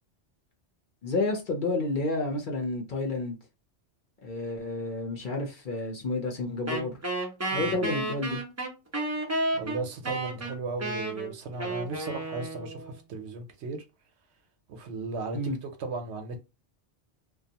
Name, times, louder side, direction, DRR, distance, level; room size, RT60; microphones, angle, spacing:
voice 1, 1.0-3.4 4.2-7.0 7.5-8.4 15.3-15.6, left 2 dB, 55° left, 0.7 m, -30 dB
Wind instrument woodwind instrument, 6.7-13.0, right 2 dB, 20° right, 0.4 m, -32 dB
voice 2, 9.5-13.8 14.7-16.4, right 3 dB, 70° right, 0.9 m, -36 dB
2.5 x 2.3 x 2.7 m
omnidirectional pair, 1.2 m